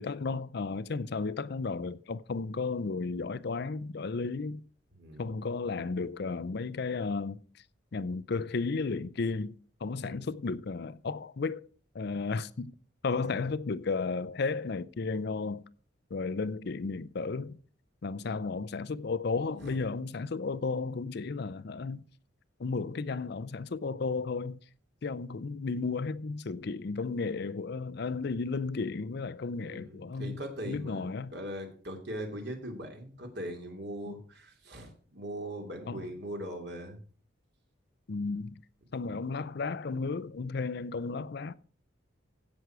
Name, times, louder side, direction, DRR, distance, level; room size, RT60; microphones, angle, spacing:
voice 1, 0.0-4.6 5.2-7.4 7.9-9.5 9.8-11.7 11.9-12.7 13.0-15.6 16.1-17.6 18.0-22.0 22.6-24.6 25.0-31.3 34.1-34.2 35.9-36.1 38.1-38.6 38.9-41.5, left 4 dB, 55° left, 0.5 m, -33 dB
voice 2, 5.0-5.3 10.0-10.3 13.1-13.4 18.2-18.4 19.6-19.8 29.6-37.0 39.0-39.2, right 1 dB, 55° right, 2.8 m, -41 dB
16.0 x 6.3 x 4.8 m
head